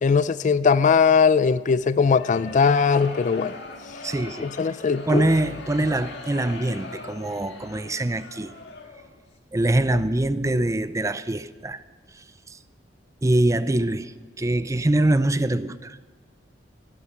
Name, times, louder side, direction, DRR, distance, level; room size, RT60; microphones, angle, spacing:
voice 1, 0.0-3.5 4.4-5.3, left 5 dB, 40° left, 0.4 m, -20 dB
sound 1, 1.9-9.2, left 3 dB, 65° left, 1.8 m, -40 dB
voice 2, 4.0-4.5 5.1-8.5 9.5-11.8 12.1-12.2 12.5-12.6 13.2-14.1 14.4-16.0, right 1 dB, 15° right, 0.5 m, -23 dB
17.5 x 12.5 x 5.9 m
head